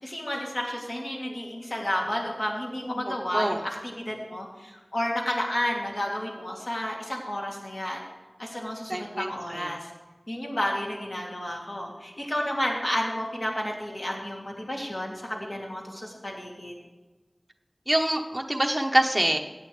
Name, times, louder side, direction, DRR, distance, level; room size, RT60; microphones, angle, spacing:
voice 1, 0.0-8.0 8.4-9.9 10.3-16.7, left 1 dB, 55° left, -1 dB, 2.6 m, -31 dB
voice 2, 8.9-9.7 17.9-19.4, right 1 dB, 20° right, 2 dB, 1.0 m, -25 dB
17.0 x 8.6 x 3.3 m, 1.2 s
wide cardioid pair, 50°, 0 cm